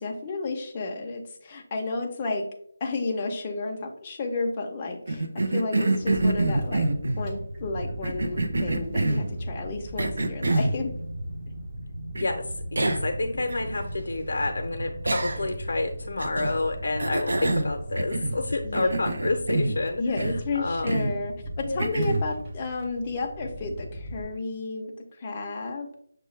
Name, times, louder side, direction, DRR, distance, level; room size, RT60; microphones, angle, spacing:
voice 1, 0.0-2.4 2.8-6.9 7.2-10.9 18.6-18.9 20.0-26.0, left 3 dB, 20° left, 1 dB, 0.5 m, -32 dB
Cough, 5.1-7.3 8.0-9.3 10.0-10.8 12.2-12.3 12.8-13.1 13.5-13.6 15.1-15.6 16.2-16.6 17.0-18.4 18.7-19.8 20.2-20.5 20.9-21.2 21.8-22.3, right 2 dB, 65° right, 0.6 m, -26 dB
sound 1, 6.0-24.2, right 1 dB, 10° right, 0.8 m, -37 dB
voice 2, 12.1-20.0 20.6-21.2 21.6-21.8, left 2 dB, 70° left, 4 dB, 0.6 m, -29 dB
6.2 x 2.2 x 3.1 m, 0.65 s
figure-of-eight pair, 175°, 0 cm